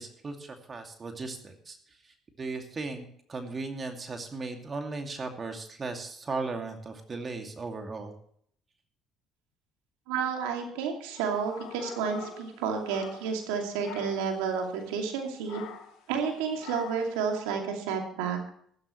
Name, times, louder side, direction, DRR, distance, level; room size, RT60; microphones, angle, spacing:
voice 1, 0.0-1.8 2.4-8.1, right 3 dB, 35° right, 4 dB, 2.4 m, -37 dB
voice 2, 10.1-15.6 16.1-18.4, right 6 dB, 80° right, 3 dB, 2.6 m, -31 dB
sound 1, 11.1-13.5 13.8-14.3 15.5-16.0 16.6-17.2, left 7 dB, 70° left, 2.9 m, -45 dB
14.5 x 13.0 x 3.2 m, 0.64 s
hypercardioid pair, 60°, 0 cm